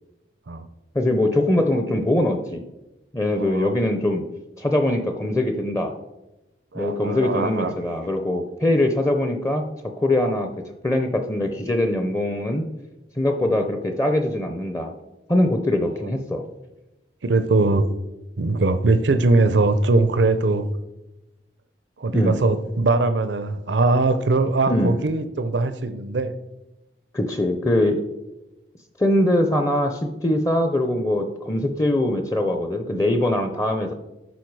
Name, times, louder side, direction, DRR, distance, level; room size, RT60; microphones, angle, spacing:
voice 1, 0.9-2.6 3.1-4.2 4.6-6.0 6.7-9.6 10.0-10.5 10.8-12.7 13.2-14.9 15.3-16.4 22.1-22.4 24.7-25.0 27.1-28.0 29.0-33.9, left 1 dB, 15° left, 6 dB, 0.6 m, -22 dB
voice 2, 3.3-3.8 6.7-7.7 10.3-10.4 17.2-17.9 18.4-20.7 22.0-26.3, right 3 dB, 80° right, 11 dB, 0.6 m, -21 dB
12.0 x 4.6 x 4.7 m, 0.99 s
head